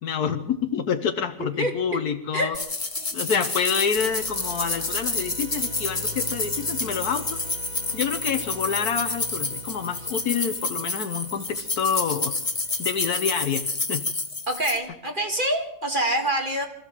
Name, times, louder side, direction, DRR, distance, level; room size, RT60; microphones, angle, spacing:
voice 1, 0.0-2.5 3.1-7.4 7.9-12.3 12.8-14.0, left 7 dB, 85° left, 6 dB, 1.6 m, -27 dB
voice 2, 1.4-2.0 2.3-2.6 3.0-3.1 14.5-16.7, right 1 dB, 35° right, 3 dB, 2.4 m, -26 dB
sound 1, 2.5-14.8, left 3 dB, 25° left, 1.7 m, -29 dB
sound 2, 4.0-13.6, equal, 75° right, 3.4 m, -43 dB
25.0 x 14.0 x 7.6 m, 0.77 s
omnidirectional pair, 1.6 m